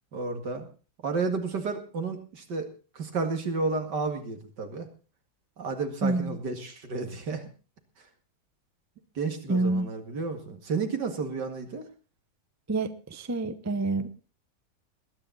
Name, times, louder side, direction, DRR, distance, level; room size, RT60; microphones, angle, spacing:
voice 1, 0.1-0.7 1.0-2.7 3.0-4.9 5.6-7.5 9.2-11.8, right 4 dB, 80° right, 6 dB, 2.7 m, -31 dB
voice 2, 6.0-6.4 9.5-9.9 12.7-14.1, right 2 dB, 15° right, 12 dB, 0.6 m, -27 dB
20.5 x 10.0 x 4.1 m, 0.35 s
omnidirectional pair, 1.8 m